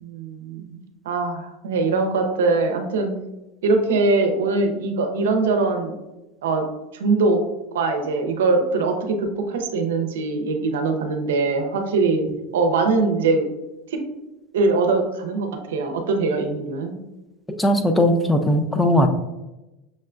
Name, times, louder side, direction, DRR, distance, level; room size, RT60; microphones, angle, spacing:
voice 1, 0.0-3.2 3.6-6.0 6.4-6.6 6.9-7.4 7.7-12.3 12.5-13.5 13.9-14.0 14.5-17.0, right 3 dB, 85° right, 4 dB, 0.6 m, -22 dB
voice 2, 17.5-19.1, equal, 10° left, 6 dB, 0.4 m, -18 dB
6.2 x 2.2 x 2.4 m, 1.0 s
hypercardioid pair, 105°, 0 cm